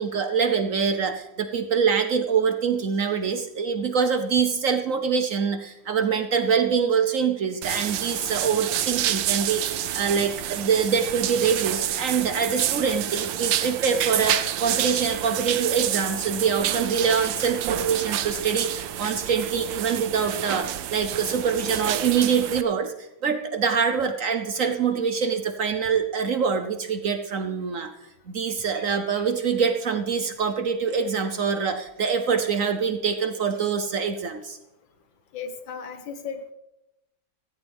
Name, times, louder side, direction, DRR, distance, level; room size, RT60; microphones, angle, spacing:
voice 1, 0.0-27.9 28.3-34.6, right 6 dB, 55° right, 8 dB, 1.0 m, -25 dB
sound 1, 7.6-22.6, right 12 dB, 85° right, 1.4 m, -28 dB
voice 2, 35.3-36.5, left 6 dB, 85° left, 8 dB, 1.9 m, -36 dB
16.5 x 14.0 x 3.5 m, 0.92 s
omnidirectional pair, 2.0 m